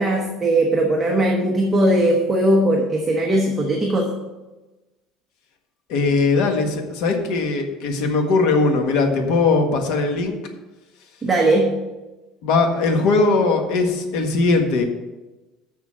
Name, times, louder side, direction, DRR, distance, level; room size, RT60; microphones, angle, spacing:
voice 1, 0.0-4.1 11.2-11.8, right 1 dB, 10° right, -1 dB, 1.0 m, -19 dB
voice 2, 5.9-10.4 12.4-14.8, left 3 dB, 65° left, 4 dB, 1.5 m, -19 dB
6.8 x 6.6 x 7.5 m, 1.1 s
cardioid pair, 160°, 0 cm